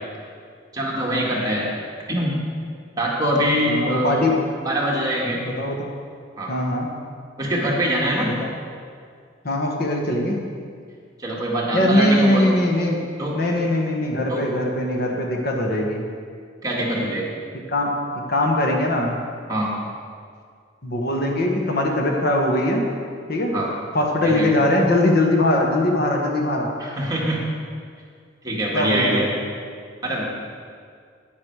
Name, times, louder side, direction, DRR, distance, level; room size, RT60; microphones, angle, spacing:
voice 1, 0.7-1.7 2.1-2.4 3.0-4.3 4.6-5.4 6.4-6.5 7.4-8.3 11.2-12.5 13.2-13.4 14.3-14.5 16.6-17.4 19.5-19.7 23.5-23.7 24.2-24.5 26.8-27.4 28.4-29.3 30.0-30.3, right 1 dB, 20° right, -4 dB, 2.0 m, -23 dB
voice 2, 3.7-4.4 5.4-5.8 6.5-6.9 8.2-8.6 9.4-10.4 11.7-13.0 13.3-16.0 17.7-17.9 18.3-19.2 20.8-22.9 23.3-23.5 23.9-26.7 28.7-29.2, left 1 dB, 55° left, 1 dB, 1.3 m, -21 dB
10.5 x 9.5 x 4.8 m, 2.1 s
head